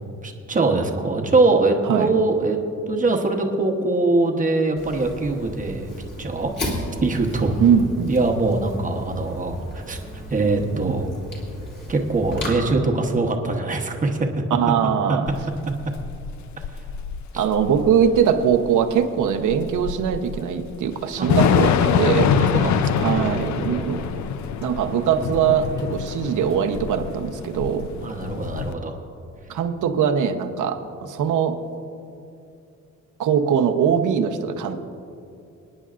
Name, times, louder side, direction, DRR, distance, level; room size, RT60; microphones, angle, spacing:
voice 1, 0.2-2.6 2.9-5.9 6.2-6.5 7.0-7.6 8.1-10.0 10.3-11.1 11.9-14.4 14.8-15.2 17.3-17.4 21.2-21.3 22.4-24.0 28.0-28.9, right 3 dB, 25° right, 3 dB, 1.0 m, -23 dB
Fire, 4.8-12.5, left 1 dB, 35° left, 2.9 m, -35 dB
voice 2, 7.6-8.1 14.5-15.3 17.4-22.4 23.0-24.0 24.6-27.9 29.5-31.6 33.2-34.8, right 8 dB, 80° right, 6 dB, 0.9 m, -21 dB
Thunder / Rain, 15.3-28.7, left 7 dB, 65° left, 0.5 m, -25 dB
27.0 x 9.8 x 2.5 m, 2.6 s
wide cardioid pair, 170°, 30 cm